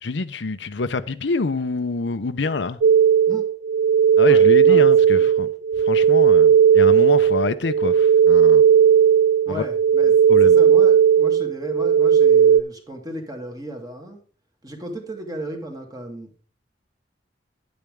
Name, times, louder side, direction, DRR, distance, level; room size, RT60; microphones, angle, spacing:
voice 1, 0.0-2.8 4.2-5.5 5.8-8.6 9.5-9.6 10.3-10.6, left 3 dB, 85° left, 0.7 m, -26 dB
sound 1, 2.8-12.6, right 8 dB, 90° right, 0.4 m, -15 dB
voice 2, 4.3-4.9 5.1-5.3 9.4-10.2 10.4-14.2 14.6-16.3, right 1 dB, 20° right, 2.0 m, -35 dB
10.5 x 8.6 x 3.6 m
head